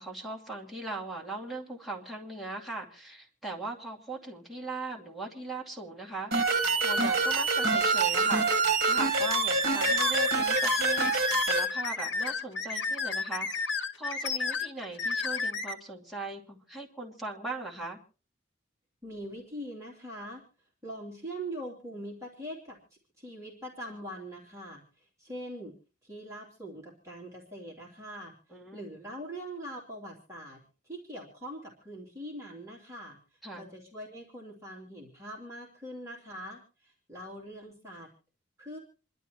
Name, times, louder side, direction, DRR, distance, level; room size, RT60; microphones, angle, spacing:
voice 1, 0.0-6.5 6.8-18.0 28.5-28.9 33.4-33.7, right 2 dB, ahead, -3 dB, 2.4 m, -39 dB
sound 1, 6.3-11.6, right 3 dB, 60° right, 1.6 m, -26 dB
sound 2, 9.8-15.7, left 4 dB, 70° left, 1.2 m, -32 dB
voice 2, 19.0-20.4 20.8-22.8 23.2-25.7 26.0-38.1 38.6-38.8, right 1 dB, 15° right, -4 dB, 3.0 m, -42 dB
27.5 x 12.0 x 3.0 m, 0.35 s
head